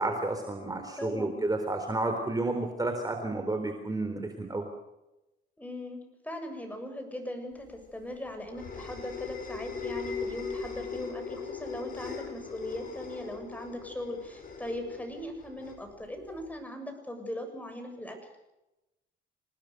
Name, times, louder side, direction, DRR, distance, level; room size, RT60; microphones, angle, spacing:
voice 1, 0.0-4.6, right 2 dB, 20° right, 5 dB, 3.9 m, -31 dB
voice 2, 1.0-1.4 5.6-18.2, left 1 dB, 10° left, 5 dB, 7.3 m, -39 dB
sound 1, 7.7-16.5, left 5 dB, 45° left, 7.1 m, -40 dB
27.5 x 19.0 x 6.7 m, 0.96 s
cardioid pair, 90°, 20 cm